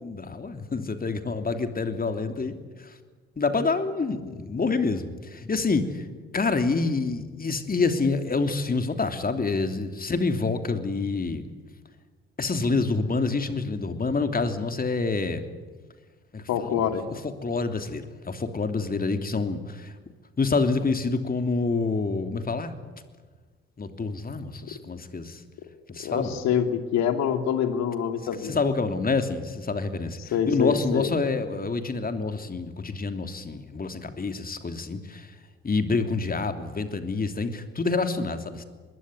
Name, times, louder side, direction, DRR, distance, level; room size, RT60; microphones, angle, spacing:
voice 1, 0.0-2.9 3.4-6.1 6.3-11.4 12.4-15.5 16.3-19.9 20.4-22.7 23.8-25.4 25.9-26.4 28.4-35.3 35.6-38.6, left 4 dB, 30° left, 8 dB, 3.1 m, -27 dB
voice 2, 16.5-17.0 26.0-28.6 30.3-31.1, left 8 dB, 60° left, 8 dB, 2.7 m, -25 dB
25.0 x 21.0 x 9.7 m, 1.4 s
figure-of-eight pair, 50°, 31 cm